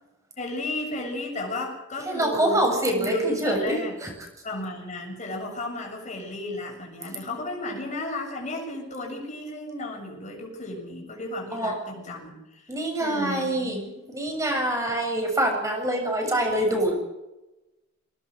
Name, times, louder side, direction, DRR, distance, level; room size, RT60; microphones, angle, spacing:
voice 1, 0.4-2.7 2.9-3.9 4.4-14.0, left 1 dB, 40° left, 0 dB, 7.1 m, -33 dB
voice 2, 2.0-4.1 11.5-11.7 12.7-16.9, right 1 dB, 15° right, 2 dB, 7.4 m, -25 dB
24.0 x 18.5 x 6.4 m, 0.98 s
head